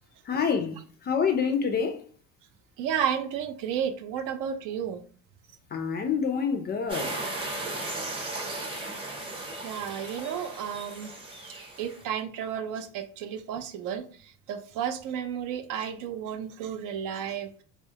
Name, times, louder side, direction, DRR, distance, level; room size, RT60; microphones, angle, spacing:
voice 1, 0.2-2.0 5.7-7.3, left 6 dB, 30° left, 0.3 m, -27 dB
voice 2, 2.8-5.0 9.6-11.1 11.5-14.1 14.5-17.6, right 8 dB, 60° right, 0.5 m, -32 dB
sound 1, 6.9-12.0, right 2 dB, 15° right, 0.8 m, -36 dB
2.2 x 2.0 x 2.7 m
supercardioid pair, 85°, 35 cm